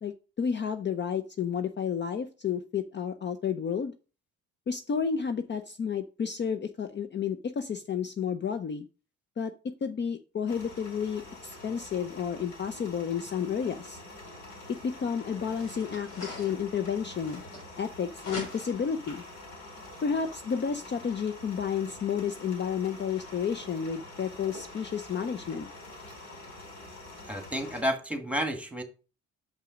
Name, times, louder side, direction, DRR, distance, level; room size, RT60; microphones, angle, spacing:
voice 1, 0.0-3.9 4.7-8.8 9.4-14.0 14.7-17.4 17.8-19.2 20.0-25.7, left 7 dB, 35° left, 0.6 m, -31 dB
sound 1, 10.5-27.8, left 2 dB, 65° left, 4.4 m, -46 dB
sound 2, 14.7-14.8 15.4-17.9 18.2-18.9, left 2 dB, 90° left, 3.7 m, -43 dB
voice 2, 27.2-28.8, equal, 5° right, 1.6 m, -31 dB
6.3 x 5.4 x 5.0 m
cardioid pair, 90°, 30 cm